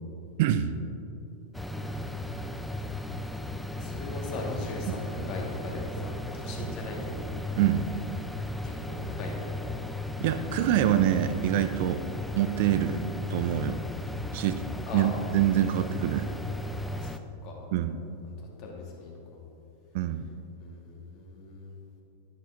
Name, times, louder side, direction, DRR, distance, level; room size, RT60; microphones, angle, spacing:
voice 1, 0.4-0.7 7.6-7.8 10.2-12.0 12.4-13.0 13.3-13.8 14.3-14.6 14.9-16.3 17.7-18.0 19.9-20.3, right 11 dB, 50° right, 11 dB, 0.5 m, -25 dB
sound 1, 1.5-17.2, left 1 dB, 5° left, 0.5 m, -35 dB
voice 2, 3.7-7.3 8.6-9.7 14.9-15.1 16.9-17.2 17.4-17.6 18.3-19.2 20.6-21.7, left 3 dB, 40° left, -1 dB, 2.4 m, -39 dB
12.0 x 10.5 x 3.9 m, 2.9 s
figure-of-eight pair, 90°, 0 cm